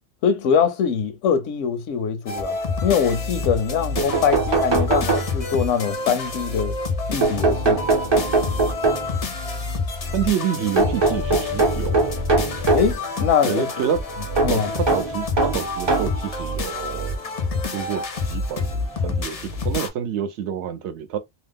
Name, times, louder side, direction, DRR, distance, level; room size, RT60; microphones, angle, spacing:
voice 1, 0.2-6.7 7.1-7.8 12.7-13.6 14.4-14.7, left 7 dB, 75° left, 0.9 m, -23 dB
sound 1, 2.3-19.9, left 3 dB, 45° left, 0.4 m, -28 dB
sound 2, 3.6-3.7 4.0-5.7 7.2-9.3 10.8-13.0 14.4-16.2 17.1-17.2 18.5-18.6 18.9-19.0, right 3 dB, 35° right, 0.5 m, -22 dB
voice 2, 10.1-12.2 13.4-14.0 14.5-17.2 17.7-21.2, right 8 dB, 70° right, 0.9 m, -28 dB
2.8 x 2.0 x 3.4 m
omnidirectional pair, 1.3 m